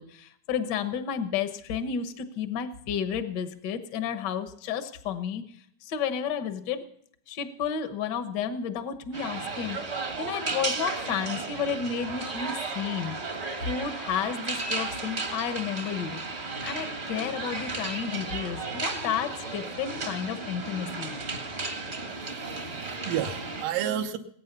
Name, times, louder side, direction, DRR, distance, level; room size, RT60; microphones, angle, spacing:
voice 1, 0.0-5.4 5.8-6.8 7.3-13.1 13.6-16.2 16.6-21.2, left 7 dB, 65° left, 9 dB, 1.0 m, -32 dB
sound 1, 9.1-23.6, right 3 dB, 45° right, 0.8 m, -34 dB
voice 2, 22.1-24.2, right 10 dB, 90° right, 4 dB, 2.6 m, -32 dB
20.5 x 9.1 x 6.8 m, 0.65 s
omnidirectional pair, 3.7 m